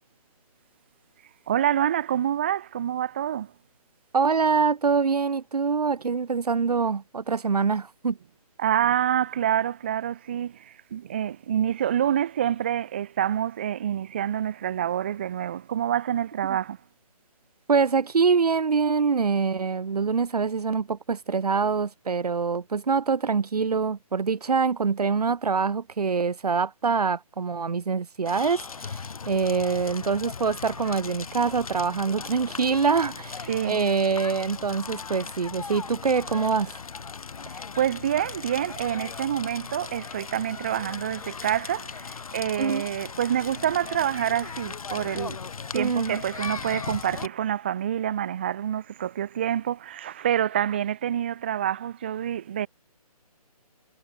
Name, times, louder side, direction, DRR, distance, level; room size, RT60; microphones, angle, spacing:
voice 1, 1.5-3.5 8.6-16.8 33.5-33.8 37.5-45.4 45.7-52.7, right 10 dB, 20° right, 0.4 m, -27 dB
voice 2, 4.1-8.2 17.7-36.8 42.6-42.8 45.7-46.2, right 5 dB, 80° right, 0.6 m, -25 dB
Crackle, 28.3-47.3, left 5 dB, 65° left, 1.1 m, -38 dB
figure-of-eight pair, 145°, 20 cm